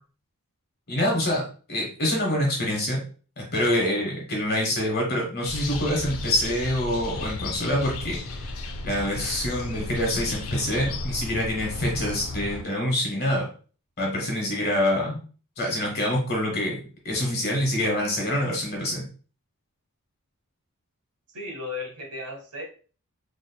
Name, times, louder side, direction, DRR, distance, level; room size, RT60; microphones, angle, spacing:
voice 1, 0.9-1.4 1.7-3.0 3.4-8.5 8.8-13.5 14.0-15.2 15.6-19.0, left 1 dB, 45° left, -1 dB, 1.2 m, -26 dB
sound 1, 5.4-12.6, left 2 dB, 65° left, 0.5 m, -34 dB
voice 2, 21.3-22.6, left 2 dB, 80° right, 1 dB, 1.3 m, -35 dB
4.1 x 2.9 x 2.2 m, 0.38 s
head